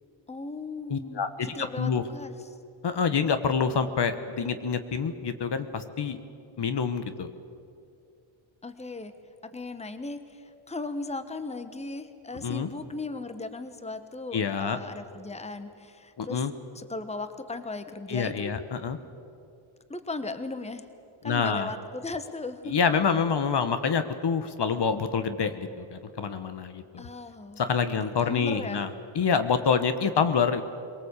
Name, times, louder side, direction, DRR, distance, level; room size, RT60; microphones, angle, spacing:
voice 1, 0.3-2.4 8.6-9.1 9.4-16.4 16.7-18.5 19.9-20.8 21.2-22.8 27.0-27.6 28.2-28.8, left 3 dB, 15° left, 10 dB, 1.2 m, -37 dB
voice 2, 0.9-2.0 2.8-6.2 6.6-7.3 12.4-12.7 14.3-14.8 16.2-16.5 18.1-19.0 21.2-21.7 22.7-27.1 27.6-28.9 29.1-30.6, left 6 dB, 55° left, 10 dB, 1.4 m, -27 dB
23.0 x 18.5 x 8.4 m, 2.5 s
cardioid pair, 90°, 49 cm